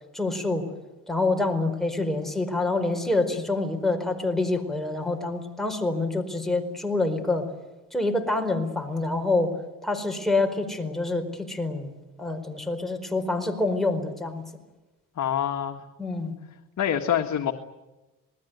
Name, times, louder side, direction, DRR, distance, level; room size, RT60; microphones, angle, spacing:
voice 1, 0.1-0.7 1.1-7.5 7.9-9.5 9.8-14.4 16.0-16.3, left 2 dB, ahead, 3 dB, 4.7 m, -26 dB
voice 2, 15.2-15.8 16.8-17.5, left 9 dB, 55° left, 4 dB, 1.8 m, -25 dB
27.0 x 20.0 x 9.5 m, 1.1 s
cardioid pair, 110°, 33 cm